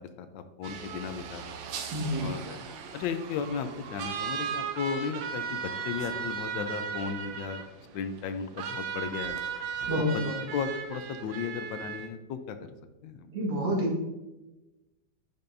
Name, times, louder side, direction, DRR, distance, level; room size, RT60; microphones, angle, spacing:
voice 1, 0.0-1.6 2.2-2.6 2.9-7.6 7.9-9.4 10.0-10.1 10.5-12.6 13.0-13.3, left 6 dB, 80° left, 9 dB, 1.3 m, -35 dB
sound 1, 0.6-12.1, right 6 dB, 85° right, 1.5 m, -37 dB
voice 2, 1.9-2.3 9.9-10.4 13.3-14.0, equal, 60° right, -3 dB, 2.2 m, -28 dB
9.7 x 5.3 x 2.6 m, 1.0 s
omnidirectional pair, 2.1 m